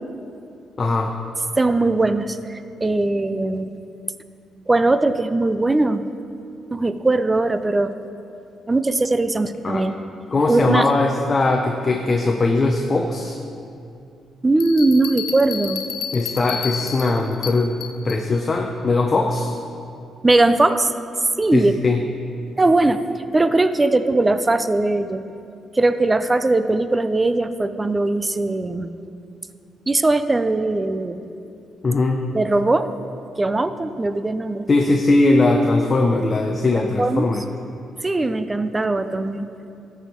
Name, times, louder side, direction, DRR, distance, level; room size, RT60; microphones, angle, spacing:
voice 1, 0.8-1.2 9.6-9.8 10.3-13.4 16.1-17.8 18.0-19.6 21.5-22.0 31.8-32.2 34.7-37.4, left 2 dB, 35° left, 3 dB, 0.6 m, -20 dB
voice 2, 1.6-3.7 4.7-6.0 6.7-7.9 8.7-9.9 10.5-10.9 14.4-15.8 20.2-20.9 21.4-21.7 22.6-23.0 23.3-25.2 25.7-28.9 29.9-31.2 32.3-32.9 33.4-34.7 36.8-37.3 38.0-39.5, right 2 dB, 20° right, 11 dB, 0.4 m, -20 dB
Bell, 14.6-18.3, left 7 dB, 80° left, 0.8 m, -31 dB
13.5 x 4.8 x 4.4 m, 2.6 s
cardioid pair, 90°, 0 cm